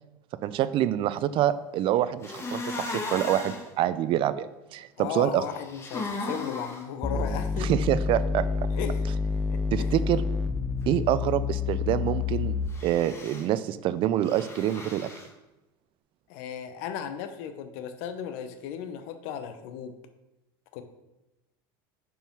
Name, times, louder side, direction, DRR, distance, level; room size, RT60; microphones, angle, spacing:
voice 1, 0.4-5.4 7.6-8.5 9.7-10.2 10.9-12.5 12.8-15.1, right 12 dB, 45° right, 15 dB, 0.4 m, -26 dB
sound 1, 2.2-3.6 5.4-6.8 12.7-13.5 14.2-15.3, left 2 dB, 25° left, 1.3 m, -36 dB
voice 2, 5.0-7.7 8.7-9.1 9.5-9.9 16.3-19.9 20.7-20.8, left 8 dB, 70° left, 9 dB, 0.8 m, -36 dB
sound 2, 7.0-13.0, left 5 dB, 5° left, 0.5 m, -28 dB
5.3 x 4.6 x 5.9 m, 0.99 s
supercardioid pair, 110°, 12 cm